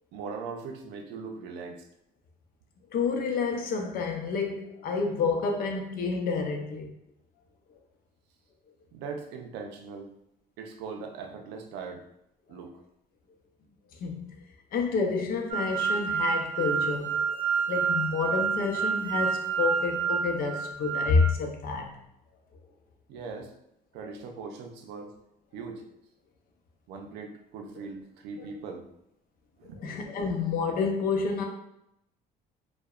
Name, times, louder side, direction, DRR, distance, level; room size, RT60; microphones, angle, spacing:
voice 1, 0.1-1.8 8.9-10.1 10.6-12.0 12.5-12.8 23.1-23.5 23.9-25.1 25.5-25.8 26.9-28.8 29.6-29.9, right 5 dB, 90° right, 3 dB, 0.4 m, -40 dB
voice 2, 2.9-6.9 14.0-14.3 14.7-17.4 17.7-22.0 29.8-31.4, left 4 dB, 60° left, 2 dB, 0.5 m, -29 dB
sound 1, 15.5-21.3, right 6 dB, 45° right, 0.6 m, -29 dB
2.7 x 2.1 x 2.3 m, 0.80 s
cardioid pair, 110°, 17 cm